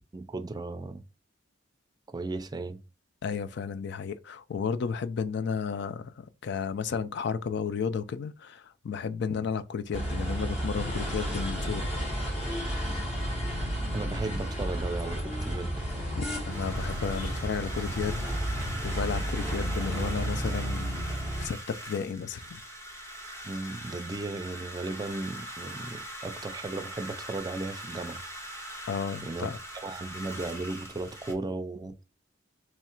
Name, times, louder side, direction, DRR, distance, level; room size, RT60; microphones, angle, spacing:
voice 1, 0.1-1.0 2.1-2.8 13.9-15.7 23.4-28.2 29.2-29.5 29.8-31.9, right 3 dB, 20° right, 0.4 m, -35 dB
voice 2, 3.2-11.9 16.2-18.2 18.8-21.0 21.4-22.6 28.9-29.6, left 6 dB, 65° left, 0.4 m, -33 dB
sound 1, 9.9-21.5, equal, 35° left, 1.1 m, -32 dB
sound 2, 16.5-31.3, right 1 dB, 15° left, 0.8 m, -42 dB
3.1 x 2.4 x 4.3 m
head